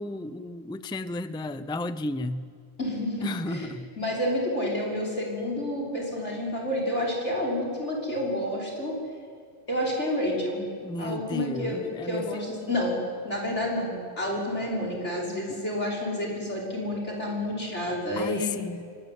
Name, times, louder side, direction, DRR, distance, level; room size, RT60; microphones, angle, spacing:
voice 1, 0.0-2.5 3.2-3.9 10.8-12.8 15.5-15.6 18.2-19.0, left 2 dB, 5° left, 13 dB, 0.6 m, -34 dB
voice 2, 2.8-3.7 4.0-9.0 9.7-10.6 11.0-13.0 13.2-18.6, left 1 dB, 80° left, -1 dB, 6.3 m, -29 dB
25.0 x 24.5 x 9.6 m, 2.1 s
omnidirectional pair, 1.2 m